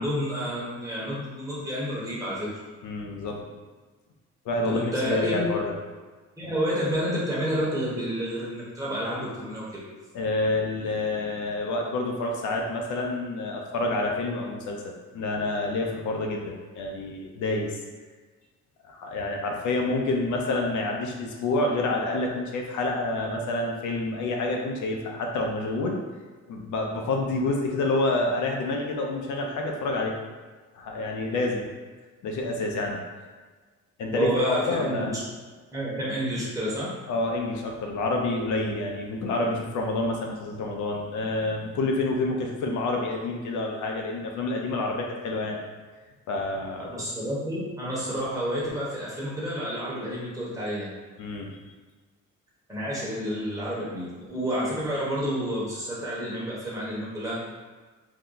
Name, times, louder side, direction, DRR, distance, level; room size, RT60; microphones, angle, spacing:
voice 1, 0.0-2.5 4.7-5.5 6.4-9.8 34.1-35.2 35.7-36.9 46.9-50.9 52.7-57.6, equal, 10° right, -7 dB, 1.1 m, -29 dB
voice 2, 2.8-3.5 4.5-5.7 10.1-17.7 18.8-26.0 26.5-30.2 30.7-31.7 32.2-33.0 34.0-35.1 37.1-45.6 46.3-47.0 51.2-51.5, left 2 dB, 75° left, 1 dB, 0.6 m, -28 dB
2.7 x 2.2 x 3.9 m, 1.4 s
cardioid pair, 90°, 30 cm